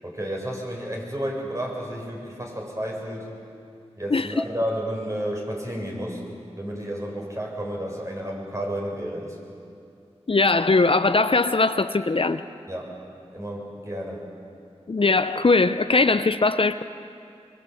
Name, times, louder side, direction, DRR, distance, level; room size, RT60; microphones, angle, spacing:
voice 1, 0.0-3.3 4.0-6.2 6.6-9.4 12.7-12.9 13.3-14.2, equal, 25° right, -1 dB, 7.4 m, -31 dB
voice 2, 10.3-12.4 14.9-16.8, left 3 dB, 55° left, 11 dB, 0.7 m, -20 dB
24.0 x 24.0 x 8.6 m, 2.5 s
cardioid pair, 40°, 11 cm